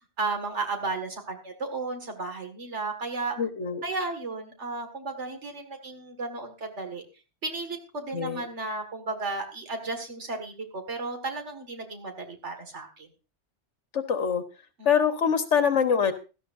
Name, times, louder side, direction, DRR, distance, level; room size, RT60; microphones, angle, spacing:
voice 1, 0.2-3.4 3.8-7.0 7.4-13.1 14.8-14.9, right 3 dB, 75° right, 4 dB, 2.3 m, -34 dB
voice 2, 3.4-3.8 8.1-8.4 13.9-14.4 14.8-16.1, left 7 dB, 80° left, 9 dB, 1.6 m, -24 dB
16.5 x 12.5 x 2.6 m, 0.32 s
omnidirectional pair, 1.2 m